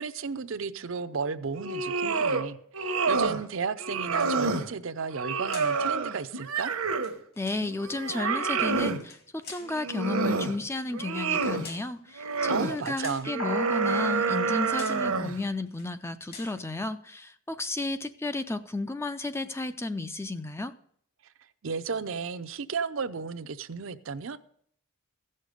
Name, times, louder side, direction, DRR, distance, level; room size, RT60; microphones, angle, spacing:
voice 1, 0.0-6.7 12.5-13.4 21.6-24.4, right 5 dB, 65° right, 10 dB, 0.6 m, -34 dB
sound 1, 1.6-2.5 2.7-3.4 3.8-4.7 5.1-7.2 7.6-9.0 9.7-10.6 10.9-11.7 12.2-12.7 13.3-15.4, right 4 dB, 80° right, 1.0 m, -28 dB
sound 2, 4.1-4.6 5.5-5.8 6.8-7.7 8.9-9.8 10.7-10.9 11.6-12.0 12.8-13.3 14.2-14.5 14.7-15.1 15.7-15.9 16.3-16.6, left 5 dB, 45° left, 1.5 m, -47 dB
voice 2, 7.4-9.2 9.5-20.7, left 2 dB, 10° left, 11 dB, 0.4 m, -33 dB
sound 3, 13.4-14.0, left 2 dB, 75° left, 1.7 m, -35 dB
15.5 x 6.5 x 5.1 m, 0.64 s
head